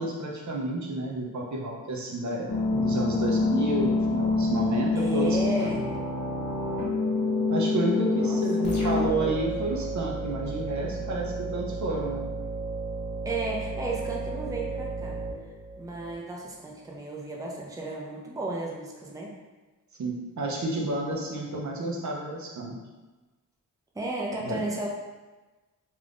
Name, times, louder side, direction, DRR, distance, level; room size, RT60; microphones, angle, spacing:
voice 1, 0.0-5.4 7.5-12.3 20.0-22.8 24.4-24.6, right 2 dB, 55° right, -1 dB, 0.6 m, -30 dB
sound 1, 2.5-9.1, left 3 dB, 90° left, 0.9 m, -26 dB
voice 2, 4.9-5.8 8.2-8.7 13.2-15.2 15.8-19.3 23.9-24.9, right 2 dB, 10° right, -2 dB, 0.5 m, -33 dB
sound 2, 8.6-16.1, right 3 dB, 55° left, 1.2 m, -34 dB
2.5 x 2.4 x 3.4 m, 1.2 s
cardioid pair, 65°, 35 cm